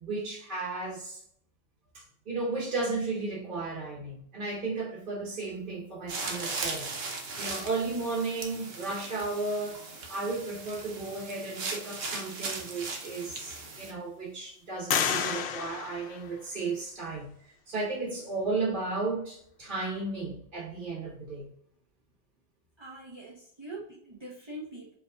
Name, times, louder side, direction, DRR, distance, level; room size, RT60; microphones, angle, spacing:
voice 1, 0.0-1.2 1.9-6.9 7.4-9.8 10.1-21.5, right 3 dB, 55° right, 1.2 m, -34 dB
sound 1, 6.1-13.9, right 4 dB, 75° right, 1.0 m, -38 dB
sound 2, 12.6-12.7 13.3-14.0 14.9-16.8, left 7 dB, 85° left, 0.8 m, -32 dB
voice 2, 22.8-24.9, right 1 dB, 30° right, 0.8 m, -43 dB
5.1 x 2.8 x 2.3 m
omnidirectional pair, 1.1 m